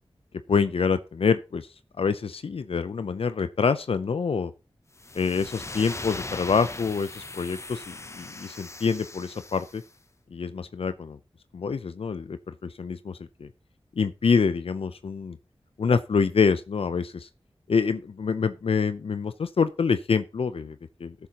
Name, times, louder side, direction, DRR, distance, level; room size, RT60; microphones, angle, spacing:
voice 1, 0.5-1.7 2.0-4.5 5.1-9.8 10.3-11.2 11.5-13.5 14.0-15.4 15.8-17.3 17.7-21.1, left 5 dB, 75° left, 0.5 m, -26 dB
sound 1, 4.9-9.9, left 2 dB, 30° left, 0.7 m, -39 dB
17.0 x 6.9 x 2.9 m
wide cardioid pair, 70°, 10 cm